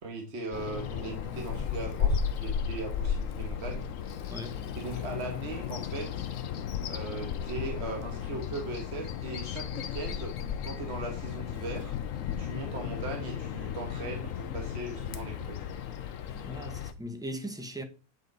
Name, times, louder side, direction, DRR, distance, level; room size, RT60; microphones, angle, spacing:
voice 1, 0.0-3.9 4.7-6.1 6.9-10.3 10.6-12.0 12.4-15.6, right 3 dB, 45° right, 1.4 m, -39 dB
Bird vocalization bird call bird song, 0.5-16.9, left 8 dB, 65° left, 0.9 m, -34 dB
voice 2, 4.3-4.6 16.3-17.8, equal, 5° right, 0.5 m, -39 dB
8.6 x 4.9 x 3.9 m
omnidirectional pair, 1.8 m